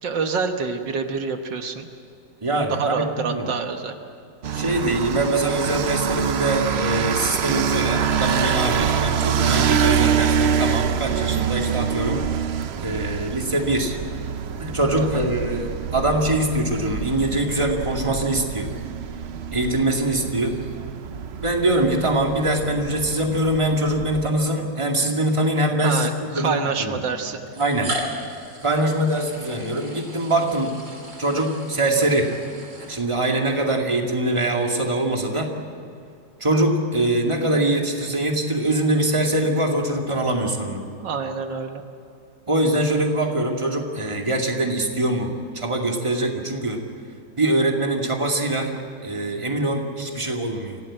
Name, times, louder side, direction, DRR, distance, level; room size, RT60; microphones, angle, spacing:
voice 1, 0.0-1.9 2.7-4.0 15.1-15.3 25.8-27.4 41.0-41.8, right 5 dB, 80° right, 6 dB, 2.0 m, -27 dB
voice 2, 2.4-3.5 4.5-12.2 12.8-14.0 14.6-18.7 19.5-20.5 21.4-27.0 27.6-27.9 28.6-30.7 31.2-32.3 32.8-35.5 36.4-40.8 42.5-46.8 47.4-48.7 49.0-50.8, right 1 dB, 15° right, 2 dB, 2.3 m, -23 dB
sound 1, 4.4-24.3, right 7 dB, 60° right, 0.7 m, -25 dB
sound 2, 25.2-25.3 26.4-26.5 27.5-33.4, equal, 40° right, 3.4 m, -36 dB
25.5 x 17.0 x 8.8 m, 2.5 s
omnidirectional pair, 2.0 m